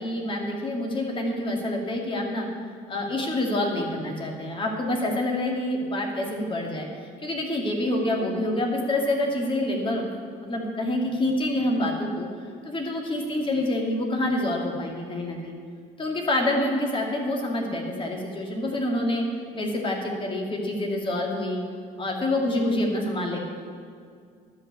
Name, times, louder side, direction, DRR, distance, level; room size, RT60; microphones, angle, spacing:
voice 1, 0.0-2.5 2.9-6.9 7.2-10.1 10.4-12.3 12.6-15.6 16.0-19.2 19.5-21.6 22.0-23.5, left 1 dB, 30° left, 1 dB, 2.2 m, -27 dB
12.0 x 5.7 x 8.1 m, 2.2 s
cardioid pair, 110°, 17 cm